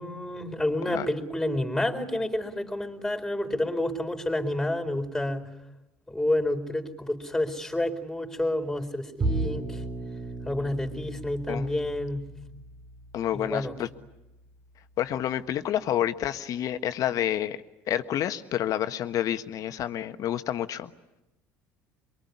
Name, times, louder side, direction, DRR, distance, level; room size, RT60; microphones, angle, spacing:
voice 1, 0.0-5.5 6.1-9.8 10.4-12.2 13.3-13.8, left 1 dB, 5° left, 6 dB, 4.3 m, -29 dB
Bowed string instrument, 9.2-15.6, right 2 dB, 40° right, 3.4 m, -36 dB
voice 2, 13.1-13.9 15.0-17.6 17.9-20.9, left 11 dB, 55° left, 10 dB, 1.4 m, -29 dB
25.0 x 23.5 x 9.9 m, 0.96 s
hypercardioid pair, 65°, 7 cm